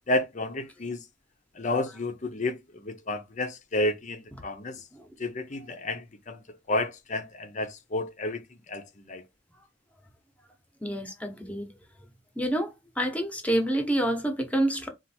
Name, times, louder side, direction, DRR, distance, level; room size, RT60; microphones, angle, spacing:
voice 1, 0.1-1.0 1.5-4.8 5.2-6.4 6.7-9.2, left 2 dB, 40° left, 0.7 m, -31 dB
voice 2, 10.8-11.7 12.4-14.9, right 1 dB, 5° left, 1.0 m, -28 dB
4.4 x 2.5 x 4.2 m
head